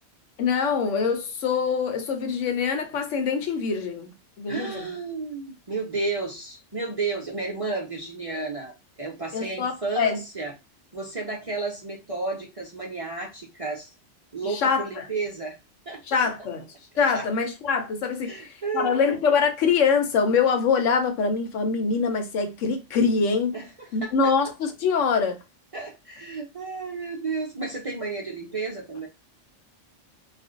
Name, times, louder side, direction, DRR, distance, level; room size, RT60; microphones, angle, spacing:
voice 1, 0.4-4.1 4.4-4.9 9.3-10.2 14.4-15.1 16.1-16.7 17.0-23.6 23.9-25.4, left 5 dB, 80° left, 1.0 m, -24 dB
voice 2, 4.5-10.5 10.9-13.9 14.3-15.6 15.9-16.3 17.1-17.3 18.2-19.0 23.5-24.3 25.7-29.1, right 3 dB, 40° right, 0.5 m, -32 dB
2.5 x 2.1 x 3.6 m
omnidirectional pair, 1.3 m